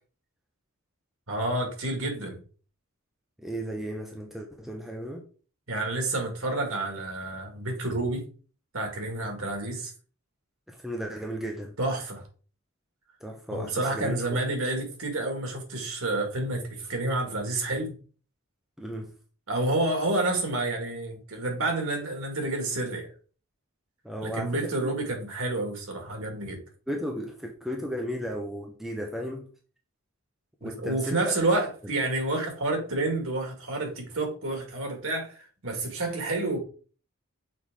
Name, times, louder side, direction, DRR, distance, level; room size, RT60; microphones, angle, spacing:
voice 1, 1.3-2.4 5.7-8.2 8.7-9.9 11.8-12.2 13.5-17.9 19.5-23.1 24.2-26.6 30.6-36.6, right 2 dB, 85° right, 2.1 m, -29 dB
voice 2, 3.4-5.2 10.7-11.7 13.2-14.4 18.8-19.1 24.0-24.7 26.9-29.5 30.6-31.3, equal, ahead, 0.7 m, -35 dB
6.4 x 4.7 x 3.7 m
head